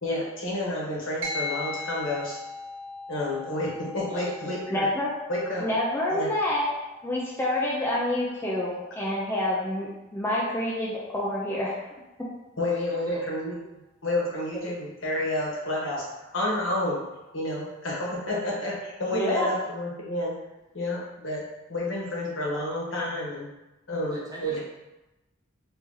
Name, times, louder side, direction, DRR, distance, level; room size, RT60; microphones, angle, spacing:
voice 1, 0.0-2.4 3.1-4.9 5.3-5.6 6.1-6.3 12.6-13.6 14.0-16.0 16.3-17.0 17.3-20.3 20.7-21.4 21.7-23.5 23.9-24.6, left 1 dB, 75° left, -4 dB, 1.1 m, -30 dB
sound 1, 1.2-10.9, left 3 dB, 65° right, 0.6 m, -40 dB
voice 2, 4.1-4.6 12.6-13.2 24.1-24.6, right 1 dB, 20° right, -5 dB, 0.8 m, -43 dB
voice 3, 4.7-5.1 5.6-6.7 7.0-11.8 19.1-19.5, left 1 dB, 10° left, -6 dB, 0.5 m, -27 dB
2.8 x 2.8 x 3.7 m, 0.99 s
head